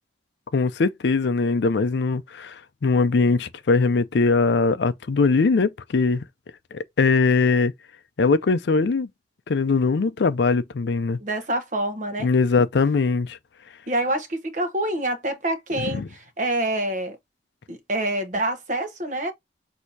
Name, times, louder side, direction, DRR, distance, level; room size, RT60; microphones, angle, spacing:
voice 1, 0.5-2.5 2.8-6.2 7.0-7.7 8.2-9.1 9.5-11.2 12.2-13.4 15.8-16.1, left 4 dB, 70° left, 0.4 m, -21 dB
voice 2, 11.2-12.3 13.9-17.2 17.7-19.3, right 1 dB, 45° right, 0.9 m, -26 dB
6.3 x 2.8 x 2.6 m
head